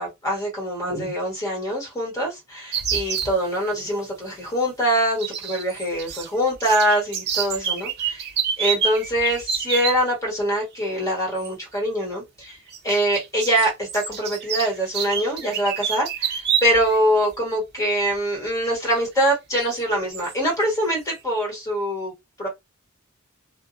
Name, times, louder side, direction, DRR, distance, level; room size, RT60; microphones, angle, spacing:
voice 1, 0.0-8.3 8.6-12.6 12.8-22.1 22.4-22.5, equal, 15° left, 1.3 m, -24 dB
sound 1, 2.7-3.3 5.2-6.3 6.5-10.0 11.4-11.5 12.7-17.0 17.3-17.4 18.9-19.0 19.6-19.8 20.1-20.3, right 7 dB, 55° right, 0.5 m, -27 dB
2.4 x 2.0 x 2.5 m
head